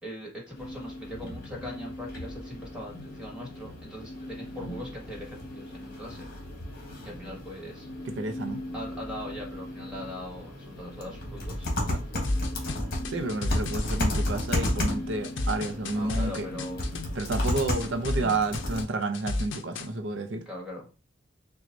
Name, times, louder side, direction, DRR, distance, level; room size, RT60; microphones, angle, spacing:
voice 1, 0.0-6.2 7.0-7.9 8.7-12.2 15.9-16.8 20.4-20.9, left 1 dB, 5° right, 1.7 m, -41 dB
sound 1, 0.6-18.8, left 1 dB, 50° left, 1.5 m, -34 dB
voice 2, 8.1-8.6 11.9-12.0 13.1-16.5 17.2-20.4, right 2 dB, 70° right, 0.6 m, -30 dB
sound 2, 12.2-19.9, left 2 dB, 70° left, 0.6 m, -32 dB
5.9 x 2.3 x 2.6 m
head